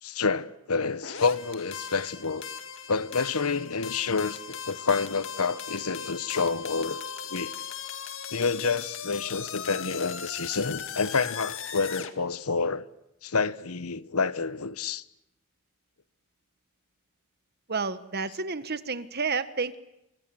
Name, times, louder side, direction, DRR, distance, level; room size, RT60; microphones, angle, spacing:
voice 1, 0.0-2.4 2.9-7.0 7.3-7.5 8.3-12.8 13.2-15.0, left 4 dB, 80° left, 1.2 m, -28 dB
sound 1, 1.0-12.1, left 8 dB, 60° left, 2.2 m, -38 dB
voice 2, 17.7-19.8, right 4 dB, 45° right, 1.5 m, -30 dB
29.0 x 25.5 x 7.9 m
head